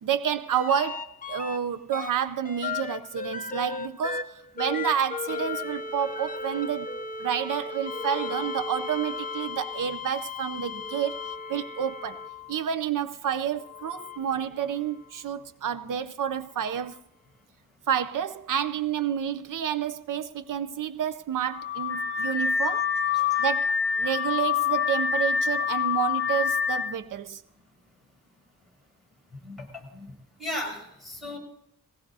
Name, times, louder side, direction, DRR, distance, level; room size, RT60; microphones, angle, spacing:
voice 1, 0.0-6.9 7.2-12.2 12.5-17.0 17.9-22.9 23.4-27.4, right 9 dB, 80° right, 0.6 m, -29 dB
sound 1, 0.5-1.6 1.9-12.7 13.5-15.1 16.8-16.9, left 4 dB, 25° left, 0.5 m, -36 dB
Car / Alarm, 21.5-26.9, left 7 dB, 45° left, 0.9 m, -26 dB
voice 2, 22.2-22.7 23.1-23.5 29.3-30.1 30.4-31.4, left 1 dB, ahead, 7.9 m, -38 dB
22.0 x 18.0 x 2.7 m
wide cardioid pair, 155°, 32 cm